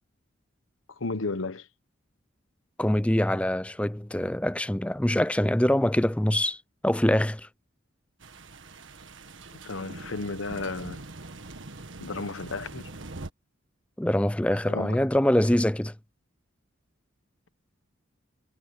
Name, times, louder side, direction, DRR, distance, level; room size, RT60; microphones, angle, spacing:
voice 1, 1.0-1.7 9.6-11.0 12.0-12.9 14.7-15.0, left 3 dB, 90° left, 1.1 m, -33 dB
voice 2, 2.8-7.5 14.0-15.9, left 1 dB, 5° left, 0.5 m, -24 dB
sound 1, 8.2-13.3, right 2 dB, 75° right, 1.6 m, -43 dB
head